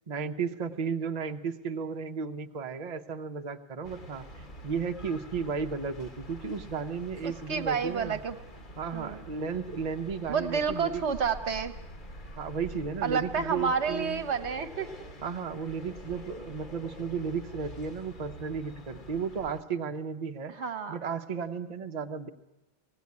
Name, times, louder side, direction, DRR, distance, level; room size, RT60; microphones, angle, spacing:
voice 1, 0.1-4.3 4.6-8.2 8.8-11.0 12.4-14.3 15.2-20.5 20.9-22.3, right 5 dB, 35° right, 5 dB, 0.8 m, -34 dB
sound 1, 3.8-19.6, equal, 40° left, 1.5 m, -46 dB
voice 2, 7.2-8.4 8.9-9.2 10.3-11.7 13.0-14.9 20.5-21.0, right 6 dB, 60° right, 9 dB, 1.2 m, -30 dB
19.0 x 16.0 x 9.5 m, 1.0 s
omnidirectional pair, 1.3 m